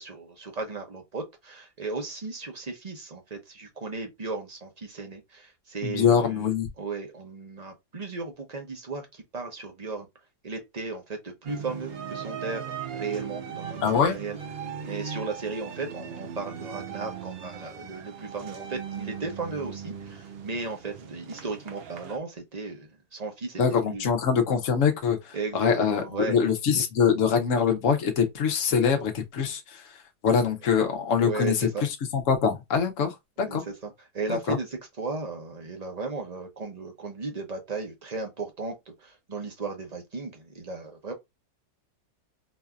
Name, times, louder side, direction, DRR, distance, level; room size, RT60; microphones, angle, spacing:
voice 1, 0.0-10.1 10.4-14.4 14.8-23.6 23.9-24.1 25.3-26.4 31.2-31.8 33.4-34.7 35.0-41.1, right 3 dB, 30° right, 0.8 m, -35 dB
voice 2, 5.8-6.7 13.8-14.2 23.6-29.9 30.2-33.6 34.3-34.6, left 6 dB, 55° left, 1.2 m, -24 dB
sound 1, 11.4-22.2, right 7 dB, 65° right, 0.6 m, -38 dB
4.0 x 2.7 x 2.3 m
omnidirectional pair, 1.7 m